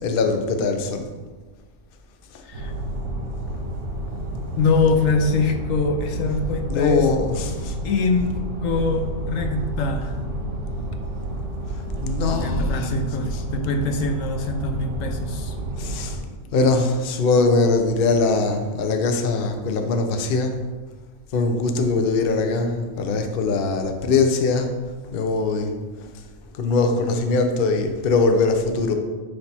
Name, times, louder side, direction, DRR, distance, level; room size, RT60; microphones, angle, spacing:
voice 1, 0.0-1.0 2.3-2.4 6.7-7.8 12.0-12.9 13.3-13.4 15.8-16.2 16.5-20.6 21.3-24.7 25.1-25.7 26.5-28.9, left 3 dB, 55° left, 5 dB, 0.7 m, -21 dB
sound 1, 2.5-16.2, right 1 dB, 65° right, 1.3 m, -30 dB
voice 2, 4.6-7.1 7.8-8.3 8.6-10.1 12.3-15.6, left 4 dB, 75° left, 5 dB, 1.0 m, -23 dB
9.8 x 3.3 x 4.2 m, 1.4 s
omnidirectional pair, 1.4 m